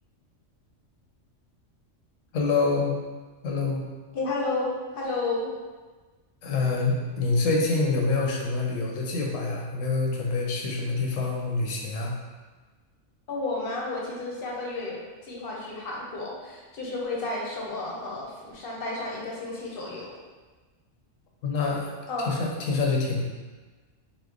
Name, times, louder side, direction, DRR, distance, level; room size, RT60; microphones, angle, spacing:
voice 1, 2.3-3.0 3.4-3.8 6.4-12.1 21.4-21.9 22.2-23.2, left 3 dB, 90° left, -1 dB, 1.0 m, -26 dB
voice 2, 4.1-5.5 13.3-20.1 22.1-22.3, left 2 dB, 55° left, -3 dB, 0.7 m, -32 dB
3.0 x 2.1 x 3.6 m, 1.3 s
omnidirectional pair, 1.3 m